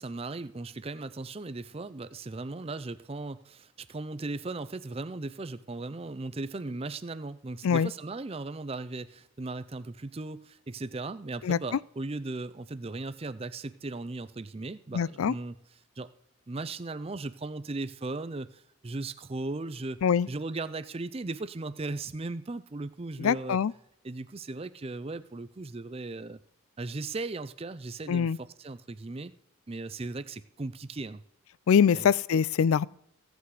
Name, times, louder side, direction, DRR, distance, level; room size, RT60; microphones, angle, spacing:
voice 1, 0.0-15.6 16.0-16.1 16.5-20.0 20.3-23.6 24.0-26.4 26.8-29.3 29.7-31.2 31.9-32.1, right 3 dB, 25° right, 0.5 m, -37 dB
voice 2, 14.9-15.3 20.0-20.3 23.2-23.7 28.1-28.4 31.7-32.9, left 7 dB, 75° left, 0.4 m, -23 dB
16.0 x 8.2 x 4.8 m
head